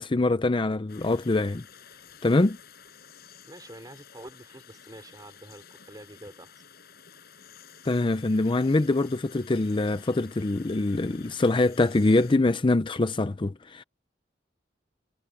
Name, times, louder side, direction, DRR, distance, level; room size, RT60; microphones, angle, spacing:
voice 1, 0.0-1.6 2.2-2.6 7.8-13.8, left 2 dB, 30° left, 0.5 m, -24 dB
sound 1, 0.9-12.4, left 7 dB, 60° left, 7.9 m, -52 dB
voice 2, 3.4-6.6, right 1 dB, 20° right, 4.9 m, -47 dB
head